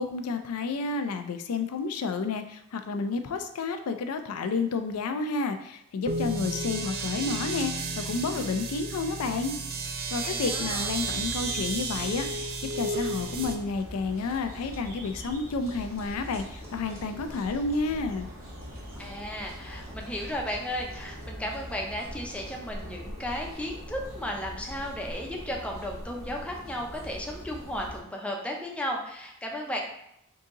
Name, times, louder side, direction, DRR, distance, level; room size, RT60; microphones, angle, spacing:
voice 1, 0.0-9.5 10.1-18.3, left 4 dB, 80° left, 7 dB, 0.4 m, -30 dB
sound 1, 6.1-13.6, right 3 dB, 45° right, 0.4 m, -32 dB
voice 2, 10.2-10.9 19.0-29.8, equal, 5° left, 0 dB, 0.5 m, -34 dB
sound 2, 11.1-22.6, right 1 dB, 15° right, 0.9 m, -50 dB
sound 3, 13.2-28.0, equal, 80° right, 1.4 m, -42 dB
3.8 x 2.7 x 3.7 m, 0.79 s
head